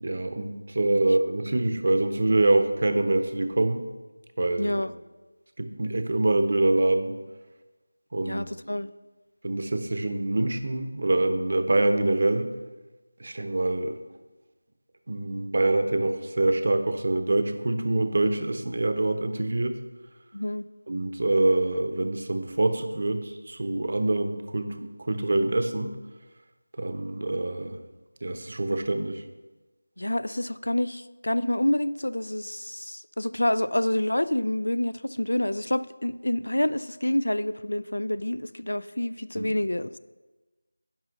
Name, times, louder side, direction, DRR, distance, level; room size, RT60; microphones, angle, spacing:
voice 1, 0.0-3.8 4.4-4.8 5.6-7.2 8.1-8.5 9.4-12.5 13.2-13.9 15.1-19.8 20.9-26.0 26.8-27.8 28.2-29.2 39.3-39.5, right 2 dB, 50° right, 8 dB, 0.7 m, -25 dB
voice 2, 4.6-4.9 8.3-8.9 20.3-20.7 30.0-40.0, left 1 dB, 85° left, 16 dB, 0.4 m, -27 dB
10.5 x 3.7 x 6.5 m, 1.2 s
figure-of-eight pair, 175°, 0 cm